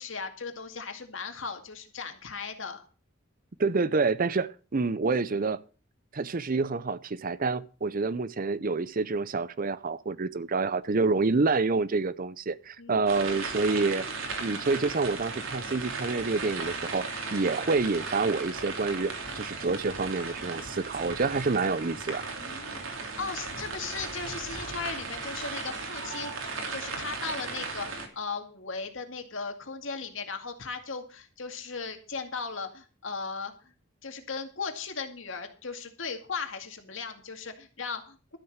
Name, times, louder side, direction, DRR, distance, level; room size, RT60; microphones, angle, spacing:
voice 1, 0.0-2.8 12.8-13.0 22.4-22.8 23.2-33.5 34.0-38.4, left 5 dB, 75° left, 2.2 m, -37 dB
voice 2, 3.6-5.6 6.1-14.1 14.4-22.2, right 3 dB, 45° right, 0.6 m, -28 dB
sound 1, 13.1-28.1, right 4 dB, 90° right, 3.0 m, -36 dB
13.0 x 7.6 x 6.5 m
head